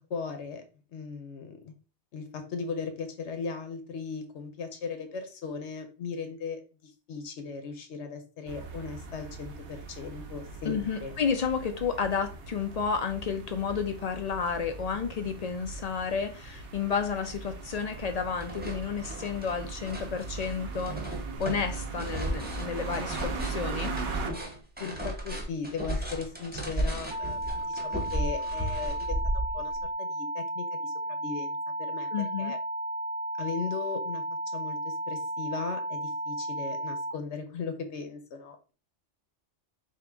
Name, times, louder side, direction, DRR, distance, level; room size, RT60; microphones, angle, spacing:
voice 1, 0.1-0.6 0.9-1.7 2.1-11.1 24.8-32.1 32.4-32.6 33.4-34.2 34.5-38.7, left 5 dB, 85° left, 7 dB, 1.1 m, -38 dB
sound 1, 8.5-24.3, right 4 dB, 85° right, 0.9 m, -39 dB
voice 2, 10.7-23.9 32.1-32.5, left 6 dB, 60° left, 7 dB, 0.4 m, -31 dB
sound 2, 16.7-16.8 17.2-17.9 18.2-29.8, right 1 dB, 10° right, 0.7 m, -35 dB
sound 3, 27.1-37.1, right 1 dB, 55° right, 0.8 m, -34 dB
3.8 x 2.7 x 3.4 m, 0.34 s
omnidirectional pair, 1.2 m